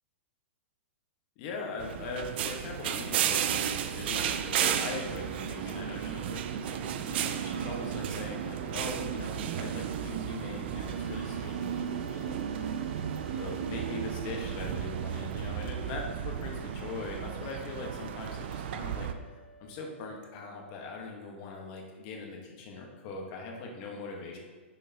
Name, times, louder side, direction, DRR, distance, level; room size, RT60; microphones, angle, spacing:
voice 1, 1.4-12.4 13.3-24.4, left 3 dB, 40° left, 0 dB, 1.4 m, -41 dB
sound 1, 1.8-19.1, right 9 dB, 55° right, 0.5 m, -33 dB
sound 2, 10.8-20.9, right 2 dB, ahead, 0.7 m, -53 dB
9.2 x 6.4 x 2.9 m, 1.4 s
hypercardioid pair, 150°, 7 cm